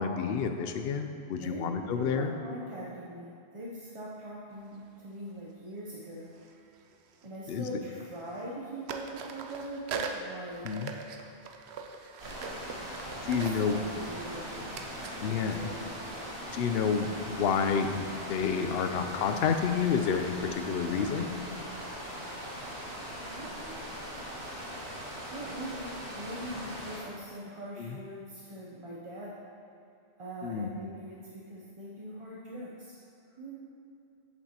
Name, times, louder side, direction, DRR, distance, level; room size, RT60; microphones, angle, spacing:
voice 1, 0.0-2.3 7.5-7.6 10.6-10.9 13.3-13.8 15.2-15.7 16.5-21.4 27.8-28.0 30.4-30.7, left 6 dB, 70° left, 7 dB, 0.7 m, -29 dB
voice 2, 1.4-6.3 7.2-10.7 13.2-14.8 15.2-15.9 23.3-23.5 25.3-29.3 30.2-33.0 33.2-33.6, right 1 dB, 35° right, -5 dB, 0.6 m, -42 dB
sound 1, 4.7-4.9 6.3-7.6 7.8-8.6 8.9-16.6, right 5 dB, 75° right, 0.8 m, -43 dB
sound 2, 12.2-27.0, equal, 55° right, 2.1 m, -40 dB
7.9 x 7.0 x 2.9 m, 2.5 s
omnidirectional pair, 1.1 m